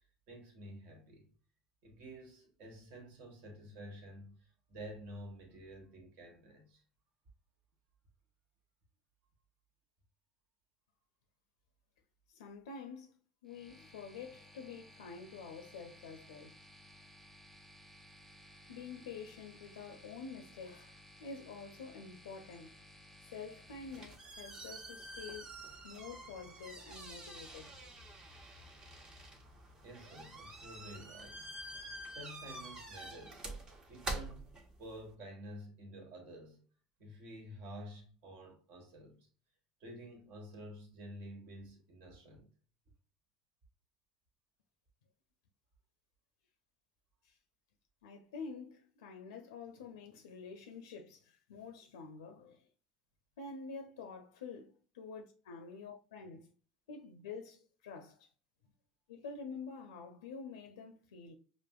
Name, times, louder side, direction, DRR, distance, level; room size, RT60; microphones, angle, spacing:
voice 1, 0.3-1.3 1.8-6.8 29.8-31.4 32.1-33.5 33.9-34.5 34.8-36.6 37.0-39.2 39.8-42.5, equal, 65° right, 1.3 m, -50 dB
voice 2, 12.3-13.1 13.4-16.6 18.7-22.7 23.3-25.5 25.8-27.7 47.2-47.4 48.0-52.7 53.4-56.5 56.9-58.3 59.1-61.3, left 5 dB, 90° left, 0.5 m, -48 dB
sound 1, 13.5-24.1, left 1 dB, 5° left, 0.9 m, -58 dB
sound 2, 23.7-35.1, right 2 dB, 30° right, 1.0 m, -47 dB
5.1 x 2.5 x 2.3 m
hypercardioid pair, 80°, 2 cm